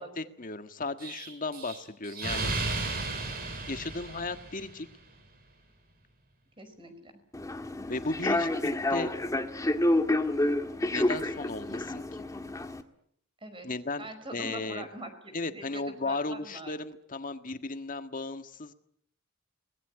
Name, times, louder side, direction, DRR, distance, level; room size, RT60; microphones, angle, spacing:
voice 1, 0.0-2.5 3.7-4.9 7.9-8.5 8.9-9.1 10.9-12.0 13.6-14.9 15.3-18.7, left 3 dB, 40° left, 9 dB, 1.6 m, -35 dB
Explosion, 1.0-4.8, right 2 dB, 45° right, 5.7 m, -34 dB
voice 2, 6.6-7.2 13.4-13.7 14.0-16.8, right 1 dB, 25° right, 8 dB, 5.0 m, -43 dB
Human voice / Subway metro underground, 7.3-12.8, left 1 dB, 15° left, 1.7 m, -29 dB
24.0 x 20.0 x 9.9 m, 0.71 s
head